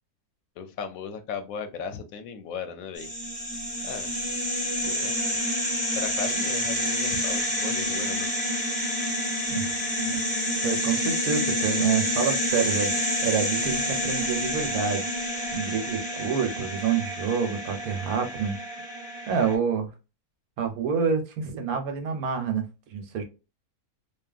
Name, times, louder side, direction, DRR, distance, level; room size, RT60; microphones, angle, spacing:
voice 1, 0.6-3.1 3.8-4.1 4.8-5.4 5.9-8.3, left 6 dB, 70° left, 8 dB, 0.9 m, -37 dB
sound 1, 3.0-19.5, equal, 5° left, 0.6 m, -28 dB
voice 2, 9.5-10.2 10.6-15.0 15.5-18.6 19.3-19.9 20.6-23.2, right 6 dB, 75° right, 5 dB, 1.2 m, -28 dB
2.8 x 2.4 x 2.3 m, 0.29 s
omnidirectional pair, 1.6 m